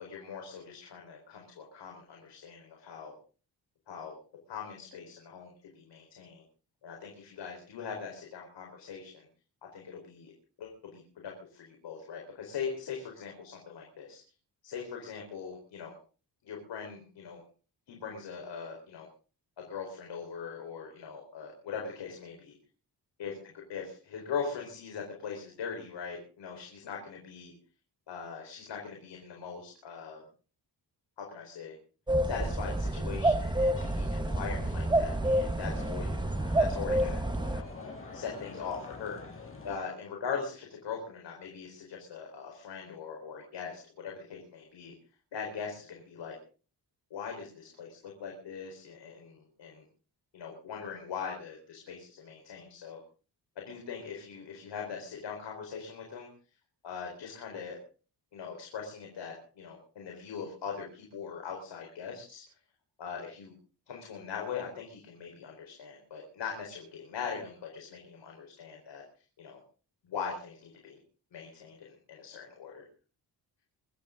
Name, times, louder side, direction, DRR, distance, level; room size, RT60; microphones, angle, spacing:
voice 1, 0.0-3.1 3.9-4.2 4.5-6.4 6.8-9.3 9.7-10.3 10.6-14.2 14.6-15.9 16.4-17.4 17.9-19.1 19.6-22.5 23.2-23.3 23.7-27.5 28.1-30.2 31.2-31.8 32.2-36.1 36.6-37.2 37.5-37.7 38.1-44.9 45.3-46.4 47.1-49.8 50.3-53.0 53.6-56.3 56.8-57.8 58.3-62.4 63.0-63.5 63.9-69.0 69.4-69.6 70.0-71.0 71.3-72.8, left 6 dB, 85° left, 1 dB, 4.5 m, -41 dB
sound 1, 32.1-37.6, right 1 dB, 10° right, 1.1 m, -29 dB
sound 2, 33.8-39.8, left 3 dB, 30° left, 6.2 m, -45 dB
24.5 x 13.5 x 3.8 m, 0.38 s
wide cardioid pair, 160°, 41 cm